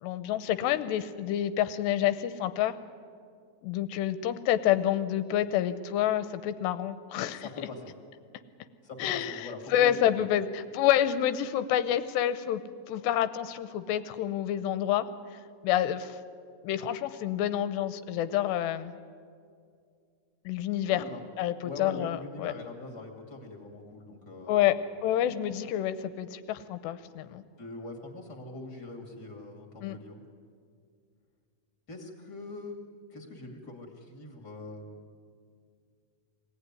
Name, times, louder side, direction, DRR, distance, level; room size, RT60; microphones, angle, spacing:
voice 1, 0.0-2.7 3.6-7.5 9.0-12.6 12.9-15.1 15.6-16.2 16.6-18.9 20.5-21.0 21.4-22.5 24.5-27.4 29.8-30.0, left 11 dB, 80° left, 12 dB, 2.7 m, -28 dB
voice 2, 7.4-7.9 8.8-10.3 20.9-21.2 21.6-24.7 27.6-30.2 31.9-32.8 33.1-35.0, left 3 dB, 30° left, 2 dB, 2.3 m, -42 dB
24.0 x 17.5 x 9.8 m, 2.2 s
omnidirectional pair, 5.2 m